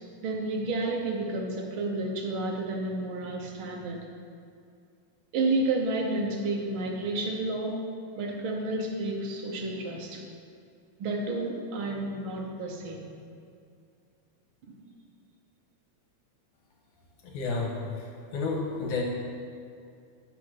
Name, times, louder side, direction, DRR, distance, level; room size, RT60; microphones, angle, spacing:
voice 1, 0.2-4.0 5.3-7.8 8.2-10.2 11.0-13.1 14.7-14.8, right 2 dB, 70° right, 0 dB, 1.2 m, -31 dB
voice 2, 17.3-17.7 18.3-19.0, left 4 dB, 75° left, -1 dB, 2.7 m, -29 dB
11.0 x 4.0 x 6.2 m, 2.4 s
omnidirectional pair, 3.5 m